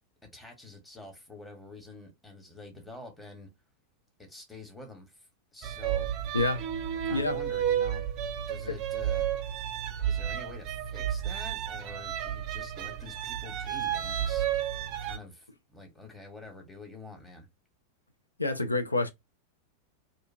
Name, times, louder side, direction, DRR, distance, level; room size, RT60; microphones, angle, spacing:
voice 1, 0.3-3.5 4.2-5.2 5.5-6.1 7.0-8.0 8.5-9.3 10.1-14.5 15.0-17.5, left 2 dB, 5° left, 1.1 m, -47 dB
sound 1, 5.6-15.2, right 10 dB, 40° right, 0.4 m, -32 dB
voice 2, 6.3-6.6 7.1-7.4 8.7-8.8 18.4-19.1, left 2 dB, 85° left, 0.4 m, -27 dB
2.5 x 2.4 x 2.5 m
figure-of-eight pair, 90°, 0 cm